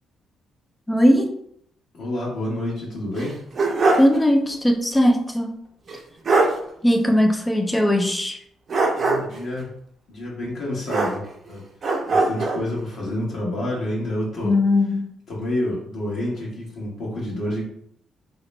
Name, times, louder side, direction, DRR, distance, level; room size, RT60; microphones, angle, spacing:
voice 1, 0.9-1.3 4.0-5.6 6.8-8.4 14.4-15.1, left 1 dB, 10° left, 4 dB, 0.5 m, -19 dB
voice 2, 1.9-3.4 8.9-9.7 10.1-11.6 12.1-14.6 15.3-17.6, left 1 dB, 65° left, -5 dB, 1.2 m, -28 dB
sound 1, 3.2-4.2 4.5-4.6 5.9-6.0 6.3-6.6 8.7-9.4 10.9-11.5 11.8-12.6, right 3 dB, 45° right, 0.7 m, -21 dB
3.1 x 2.9 x 3.2 m, 0.70 s
cardioid pair, 90°, 0 cm